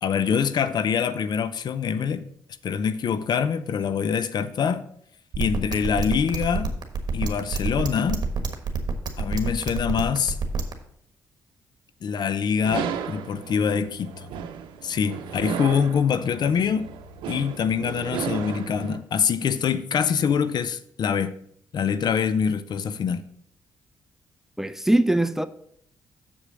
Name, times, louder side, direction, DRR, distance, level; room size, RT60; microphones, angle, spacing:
voice 1, 0.0-2.2 2.6-4.8 5.4-6.7 7.1-8.3 9.2-10.4 12.0-14.1 14.8-16.9 17.3-21.3 21.7-23.3, left 7 dB, 60° left, 0.6 m, -24 dB
sound 1, 5.3-10.7, right 5 dB, 55° right, 1.3 m, -27 dB
sound 2, 12.6-19.0, right 8 dB, 90° right, 0.7 m, -34 dB
voice 2, 24.6-25.4, right 1 dB, 5° right, 0.5 m, -21 dB
7.1 x 5.0 x 6.1 m
cardioid pair, 65°, 8 cm